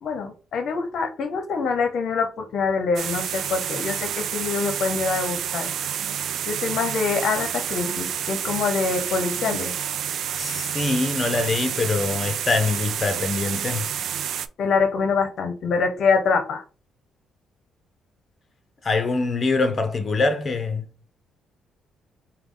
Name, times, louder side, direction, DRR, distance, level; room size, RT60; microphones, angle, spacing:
voice 1, 0.0-5.7 6.5-9.7 14.6-16.6, left 5 dB, 65° left, 0.7 m, -25 dB
sound 1, 3.0-14.5, right 9 dB, 70° right, 0.3 m, -29 dB
voice 2, 10.4-13.9 18.8-20.9, left 3 dB, 35° left, 0.8 m, -24 dB
4.7 x 2.3 x 3.6 m
cardioid pair, 90°, 0 cm